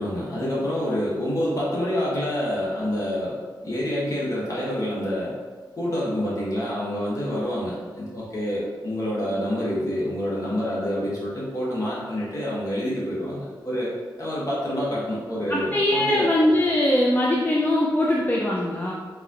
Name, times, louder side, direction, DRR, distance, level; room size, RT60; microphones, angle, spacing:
voice 1, 0.0-3.3 3.6-5.3 5.8-16.3, equal, 40° left, -7 dB, 1.5 m, -27 dB
voice 2, 15.5-18.9, left 1 dB, 20° left, -3 dB, 0.5 m, -21 dB
4.0 x 2.8 x 2.6 m, 1.5 s
cardioid pair, 40°, 9 cm